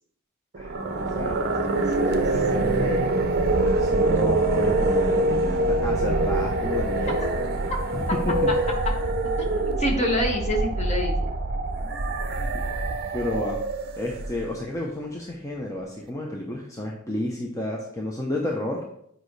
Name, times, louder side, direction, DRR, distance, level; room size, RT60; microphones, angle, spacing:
sound 1, 0.5-14.7, right 2 dB, 50° right, 0.6 m, -25 dB
voice 1, 0.6-3.1 3.6-7.2 7.9-8.5 12.3-12.5 13.1-13.6 14.0-18.8, left 1 dB, 15° left, -1 dB, 0.8 m, -31 dB
voice 2, 9.4-11.3, equal, 30° left, 0 dB, 1.6 m, -27 dB
8.8 x 5.2 x 3.2 m, 0.71 s
head